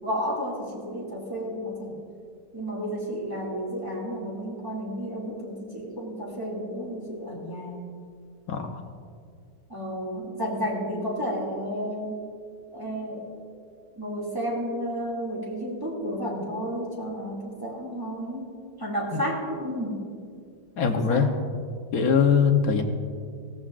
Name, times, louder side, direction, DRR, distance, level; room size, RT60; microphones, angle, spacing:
voice 1, 0.0-1.9 2.5-7.9 9.7-12.2 12.7-13.3 14.0-18.5 18.8-20.0 21.1-21.3, equal, 10° right, -4 dB, 2.3 m, -32 dB
voice 2, 20.8-21.3 21.9-22.8, left 6 dB, 60° left, 4 dB, 1.3 m, -21 dB
18.0 x 14.5 x 2.5 m, 2.2 s
omnidirectional pair, 1.9 m